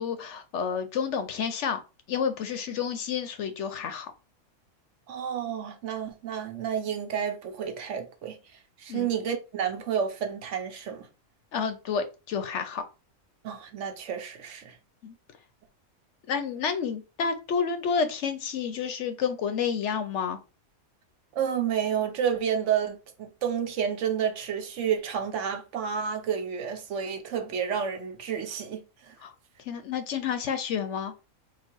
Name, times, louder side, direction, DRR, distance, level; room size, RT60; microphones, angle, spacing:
voice 1, 0.0-1.8 2.1-4.1 8.9-9.1 11.5-12.8 15.0-15.1 16.3-20.4 29.2-29.3 29.7-31.1, left 6 dB, 65° left, 0.8 m, -30 dB
voice 2, 5.1-8.4 8.8-11.1 13.4-14.8 21.3-29.1, right 8 dB, 65° right, 1.0 m, -30 dB
3.9 x 2.3 x 4.4 m
omnidirectional pair, 1.5 m